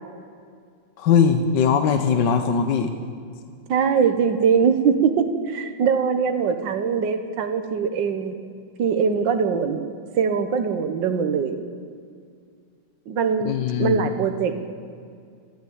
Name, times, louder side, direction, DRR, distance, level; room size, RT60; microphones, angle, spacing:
voice 1, 1.0-2.9 13.5-14.1, left 6 dB, 75° left, 7 dB, 1.7 m, -20 dB
voice 2, 3.7-8.3 8.8-9.8 10.2-11.6 13.1-13.5 13.8-14.6, right 6 dB, 80° right, 7 dB, 1.8 m, -22 dB
29.0 x 10.5 x 8.7 m, 2.2 s
omnidirectional pair, 2.0 m